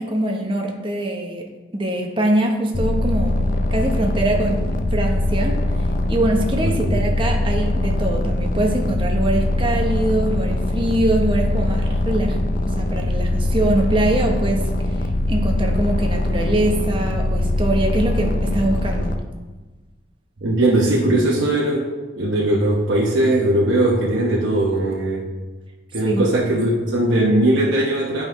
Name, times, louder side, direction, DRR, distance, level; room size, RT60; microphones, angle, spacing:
voice 1, 0.0-1.5 1.7-3.4 3.7-5.6 6.1-12.4 12.8-14.6 15.3-19.1 26.0-26.3, right 1 dB, 25° right, 2 dB, 0.9 m, -23 dB
sound 1, 2.7-19.2, left 1 dB, 45° left, 0.5 m, -22 dB
voice 2, 6.6-7.0 20.4-21.9 22.2-25.3 25.9-28.2, right 1 dB, 75° right, -5 dB, 0.9 m, -19 dB
11.0 x 5.3 x 3.1 m, 1.3 s
head